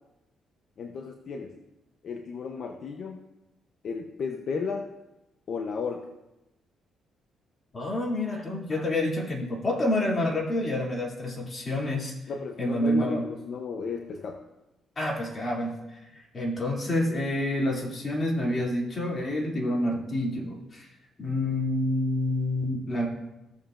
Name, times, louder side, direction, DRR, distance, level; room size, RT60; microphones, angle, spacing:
voice 1, 0.8-1.6 2.0-3.3 3.8-4.9 5.5-6.1 12.3-14.4, left 5 dB, 60° left, 4 dB, 0.8 m, -34 dB
voice 2, 7.7-12.1 12.6-13.2 15.0-20.9 21.2-23.1, left 1 dB, 30° left, -2 dB, 2.7 m, -28 dB
16.5 x 7.1 x 2.5 m, 0.97 s
cardioid pair, 90°, 0 cm